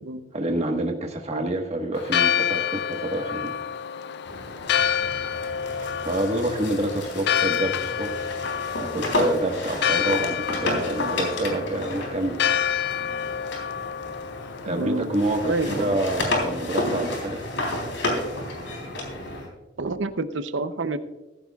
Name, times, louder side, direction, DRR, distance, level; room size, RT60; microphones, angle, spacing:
voice 1, 0.3-3.6 6.0-8.3 8.8-12.4 14.6-17.4, right 1 dB, 35° right, 3 dB, 1.5 m, -27 dB
Church bell, 1.9-16.0, left 8 dB, 60° left, 0.4 m, -28 dB
sound 1, 4.3-14.8 15.1-19.5, left 1 dB, 90° left, 3.6 m, -31 dB
voice 2, 14.7-15.1 15.4-16.0 19.8-21.0, right 3 dB, 75° right, 11 dB, 0.7 m, -28 dB
15.5 x 14.5 x 2.4 m, 1.1 s
head